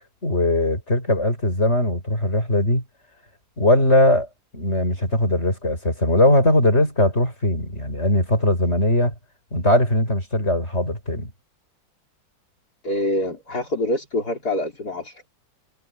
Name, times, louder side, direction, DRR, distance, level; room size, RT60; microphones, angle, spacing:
voice 1, 0.2-2.8 3.6-4.3 4.5-9.1 9.5-11.3, left 1 dB, 35° left, 8.4 m, -20 dB
voice 2, 12.8-15.2, left 1 dB, 50° left, 4.9 m, -25 dB
omnidirectional pair, 2.1 m